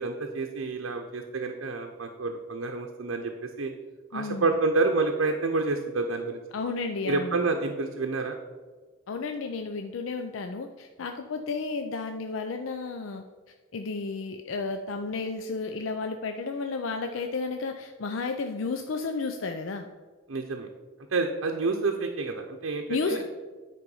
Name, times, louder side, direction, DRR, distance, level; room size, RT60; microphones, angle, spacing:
voice 1, 0.0-3.7 4.1-6.4 7.1-8.4 20.3-20.7 21.1-23.2, right 3 dB, 80° right, 3 dB, 0.7 m, -28 dB
voice 2, 4.1-4.5 6.5-7.4 9.1-13.2 13.7-19.9 22.9-23.2, left 4 dB, 75° left, 6 dB, 0.5 m, -32 dB
9.8 x 4.5 x 5.4 m, 1.4 s
head